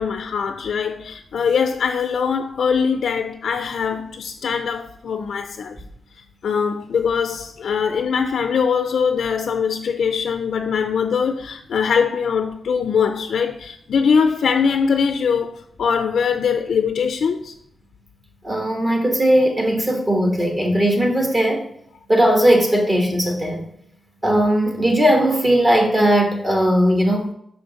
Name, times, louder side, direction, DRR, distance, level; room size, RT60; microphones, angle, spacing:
voice 1, 0.0-5.8 6.4-17.5, left 6 dB, 80° left, 0.4 m, -22 dB
voice 2, 18.4-21.6 22.1-23.6 24.2-27.3, equal, 30° right, 1.3 m, -18 dB
5.7 x 4.9 x 3.9 m
wide cardioid pair, 135°, 0 cm